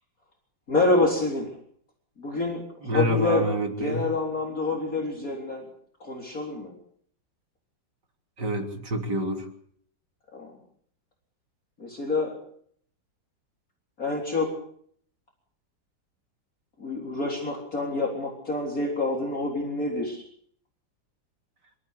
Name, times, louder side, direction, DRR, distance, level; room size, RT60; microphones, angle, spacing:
voice 1, 0.7-1.5 2.2-3.5 3.8-5.7 6.0-6.7 10.3-10.5 11.8-12.3 14.0-14.5 16.8-20.2, left 3 dB, 50° left, 0 dB, 4.2 m, -27 dB
voice 2, 2.8-4.1 8.4-9.5, right 1 dB, 65° right, 3 dB, 3.8 m, -27 dB
27.0 x 14.5 x 8.2 m, 0.63 s
omnidirectional pair, 2.0 m